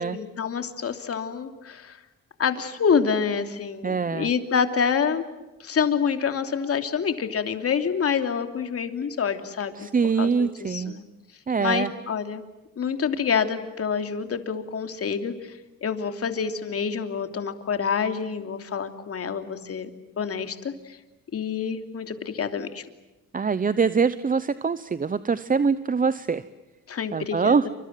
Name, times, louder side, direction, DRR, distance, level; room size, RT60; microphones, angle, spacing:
voice 1, 0.0-2.0 2.4-5.2 5.6-11.0 11.6-12.4 12.8-19.9 20.2-21.0 21.3-22.9 26.9-27.7, left 6 dB, 50° left, 7 dB, 2.9 m, -27 dB
voice 2, 3.8-4.3 9.8-10.9 11.5-11.9 23.3-26.4 27.1-27.6, right 5 dB, 30° right, 14 dB, 0.9 m, -23 dB
28.5 x 25.0 x 7.7 m, 1.1 s
cardioid pair, 90°, 30 cm